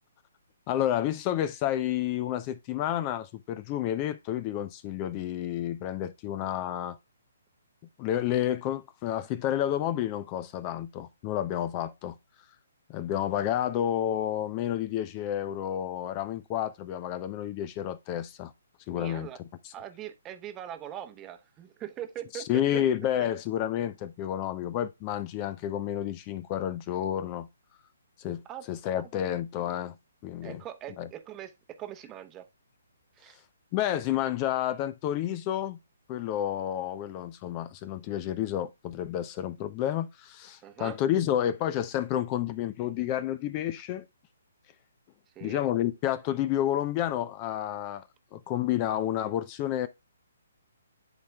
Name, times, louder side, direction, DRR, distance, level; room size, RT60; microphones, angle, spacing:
voice 1, 0.7-7.0 8.0-12.2 12.9-18.5 18.9-19.3 19.6-19.7 22.3-27.5 28.2-28.4 28.7-30.0 30.2-30.6 31.0-31.1 33.7-35.8 36.1-44.1 45.4-48.1 48.3-49.9, left 11 dB, 30° left, 0.5 m, -30 dB
voice 2, 18.9-19.4 19.7-22.8 23.2-23.3 28.4-28.7 29.0-29.1 30.4-32.5 33.2-33.4 40.6-41.0 45.3-45.6, right 11 dB, 20° right, 0.8 m, -41 dB
11.0 x 4.3 x 2.3 m
figure-of-eight pair, 140°, 0 cm